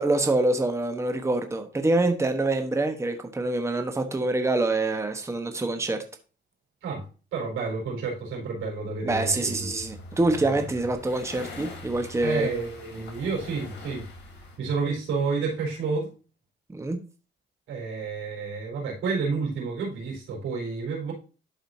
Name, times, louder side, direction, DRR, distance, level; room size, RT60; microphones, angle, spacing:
voice 1, 0.0-6.0 9.0-12.5 16.7-17.0, right 2 dB, 15° right, 6 dB, 1.1 m, -25 dB
voice 2, 7.3-9.7 10.4-10.6 12.2-14.1 14.6-16.1 17.7-21.1, right 4 dB, 90° right, -2 dB, 4.5 m, -30 dB
sound 1, 9.1-14.6, left 2 dB, 60° left, 3.7 m, -43 dB
12.0 x 5.0 x 2.7 m, 0.34 s
cardioid pair, 90°, 20 cm